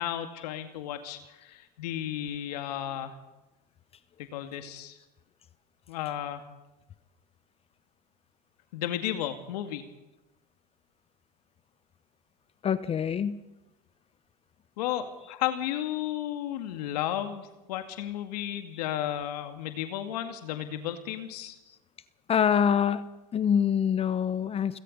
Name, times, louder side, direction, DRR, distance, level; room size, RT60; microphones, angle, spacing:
voice 1, 0.0-3.2 4.2-5.0 5.9-6.4 8.7-9.8 14.8-21.6, left 11 dB, 80° left, 8 dB, 2.1 m, -33 dB
voice 2, 12.6-13.4 22.3-23.1 23.3-24.8, left 8 dB, 30° left, 15 dB, 0.9 m, -25 dB
30.0 x 17.0 x 5.4 m, 1.0 s
supercardioid pair, 105°, 20 cm